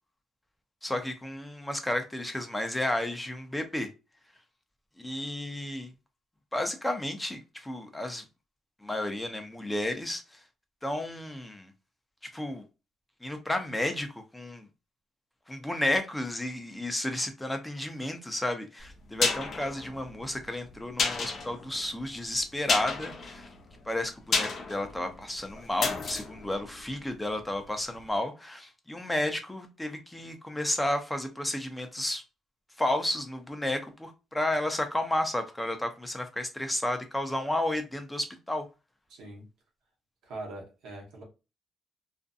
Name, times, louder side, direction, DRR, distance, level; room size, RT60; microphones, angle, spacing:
voice 1, 0.8-3.9 5.0-5.9 6.5-8.2 8.8-10.4 10.8-11.7 12.3-12.6 13.2-14.7 15.5-23.5 23.8-32.2 32.8-38.7, left 1 dB, 10° left, 0.5 m, -32 dB
sound 1, 18.8-27.7 27.9-28.0, left 4 dB, 55° left, 0.6 m, -33 dB
voice 2, 39.1-39.5 40.2-41.2, right 2 dB, 85° right, 1.0 m, -42 dB
2.5 x 2.2 x 2.5 m
cardioid pair, 90°, 0 cm